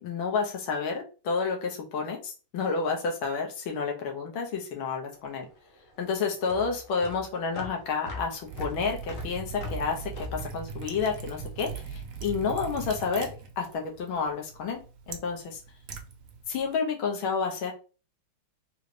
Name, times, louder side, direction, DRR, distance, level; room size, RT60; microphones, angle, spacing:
voice 1, 0.0-5.5 6.0-13.3 13.6-15.6 16.5-17.7, left 5 dB, 75° left, 2 dB, 1.8 m, -30 dB
sound 1, 5.1-11.6, left 3 dB, 55° left, 0.9 m, -42 dB
Liquid, 8.4-16.7, right 6 dB, 65° right, 0.9 m, -40 dB
3.8 x 3.2 x 3.2 m, 0.34 s
omnidirectional pair, 2.3 m